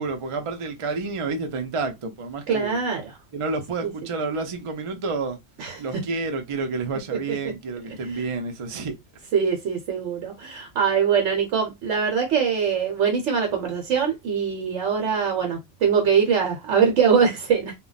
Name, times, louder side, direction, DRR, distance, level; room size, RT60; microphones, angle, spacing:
voice 1, 0.0-2.8 3.3-5.4 5.8-9.0, right 3 dB, 55° right, 0.3 m, -29 dB
voice 2, 2.5-3.2 3.8-3.9 5.6-5.8 7.9-8.2 9.3-17.7, right 6 dB, 70° right, 1.0 m, -23 dB
2.2 x 2.1 x 3.9 m
omnidirectional pair, 1.3 m